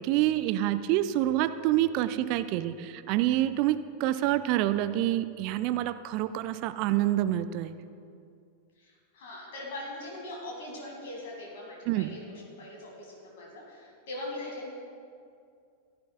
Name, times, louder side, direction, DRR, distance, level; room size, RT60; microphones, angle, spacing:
voice 1, 0.0-7.7 11.9-12.1, right 14 dB, 45° right, 12 dB, 0.4 m, -27 dB
voice 2, 8.8-14.7, left 1 dB, 55° left, -2 dB, 1.9 m, -41 dB
15.5 x 10.5 x 2.2 m, 2.4 s
figure-of-eight pair, 90°, 0 cm